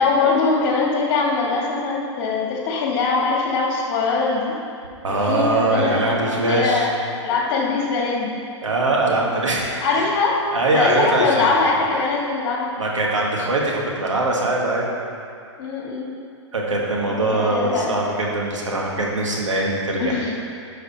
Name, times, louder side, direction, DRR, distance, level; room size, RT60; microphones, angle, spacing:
voice 1, 0.0-4.6 5.2-6.9 7.2-8.4 9.8-10.4 10.7-12.8 15.6-16.1 17.1-18.0 20.0-20.3, left 4 dB, 45° left, -2 dB, 2.3 m, -22 dB
voice 2, 5.0-6.9 8.6-10.0 10.5-11.5 12.8-14.9 16.5-20.2, right 2 dB, 85° right, -3 dB, 2.1 m, -22 dB
11.5 x 6.5 x 4.4 m, 2.4 s
figure-of-eight pair, 110°, 16 cm